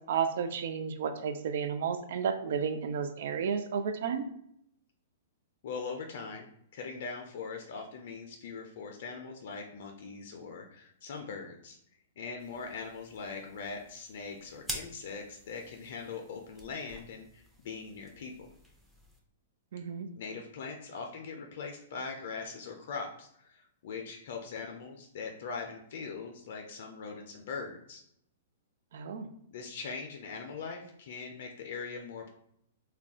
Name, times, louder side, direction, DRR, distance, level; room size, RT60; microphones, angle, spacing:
voice 1, 0.1-4.3 19.7-20.1 28.9-29.3, right 7 dB, 65° right, 8 dB, 0.3 m, -32 dB
voice 2, 5.6-11.8 12.2-18.5 20.2-28.0 29.5-32.3, left 5 dB, 60° left, 3 dB, 0.4 m, -41 dB
sound 1, 12.4-19.2, equal, ahead, 0.6 m, -48 dB
2.3 x 2.2 x 3.6 m, 0.71 s
hypercardioid pair, 125°, 0 cm